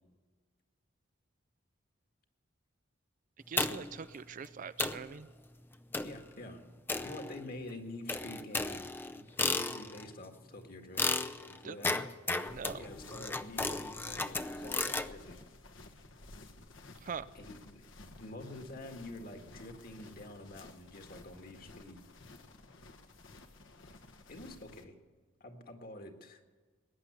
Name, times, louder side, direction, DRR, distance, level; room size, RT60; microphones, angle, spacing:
voice 1, 3.5-5.3 11.6-11.8 12.5-12.8 17.0-17.3, right 6 dB, 40° right, 16 dB, 0.4 m, -42 dB
sound 1, 3.6-4.0 4.5-4.6 4.8-5.1 5.9-6.2 6.9-7.6 8.1-10.1 11.0-15.1, left 3 dB, 10° left, 0.5 m, -34 dB
voice 2, 6.0-6.6 7.0-8.8 9.1-11.0 11.4-12.1 12.8-15.4 17.3-22.0 24.3-24.9 25.4-26.4, left 1 dB, 45° left, 5 dB, 1.8 m, -47 dB
sound 2, 12.5-24.8, left 2 dB, 70° left, 1.5 m, -54 dB
20.0 x 10.0 x 6.9 m, 1.4 s
head